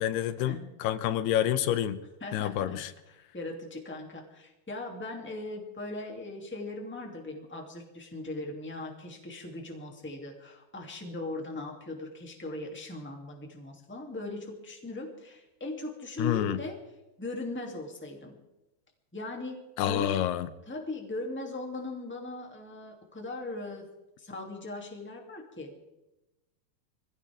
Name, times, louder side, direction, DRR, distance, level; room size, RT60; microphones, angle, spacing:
voice 1, 0.0-2.0 2.3-2.9 16.2-16.6 19.8-20.5, left 11 dB, 85° left, 13 dB, 2.8 m, -28 dB
voice 2, 2.2-16.8 17.2-18.4 19.1-20.2 20.7-23.9 24.2-25.9, left 2 dB, 5° left, 1 dB, 2.1 m, -39 dB
24.5 x 16.0 x 3.7 m, 1.0 s
omnidirectional pair, 4.6 m